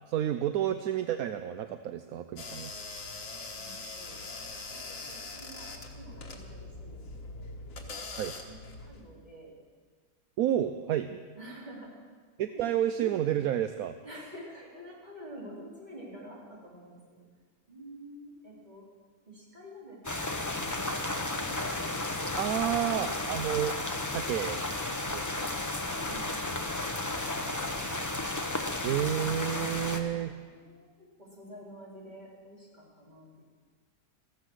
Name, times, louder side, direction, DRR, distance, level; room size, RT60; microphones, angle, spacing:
voice 1, 0.1-2.7 8.2-8.3 10.4-11.2 12.4-14.0 22.4-24.6 25.1-25.5 28.8-30.3, right 11 dB, 75° right, 10 dB, 1.1 m, -30 dB
sound 1, 2.4-9.0, left 3 dB, 60° left, 1.9 m, -42 dB
voice 2, 3.5-4.2 4.7-8.6 8.9-9.6 11.3-11.9 12.5-12.8 14.0-17.3 17.7-18.9 19.3-20.0 20.4-20.8 21.3-21.6 25.9-27.1 27.5-27.8 30.5-33.5, equal, 30° right, -5 dB, 4.1 m, -49 dB
sound 2, 20.0-30.0, left 2 dB, 15° left, 0.9 m, -33 dB
15.0 x 14.5 x 6.3 m, 1.5 s
omnidirectional pair, 1.6 m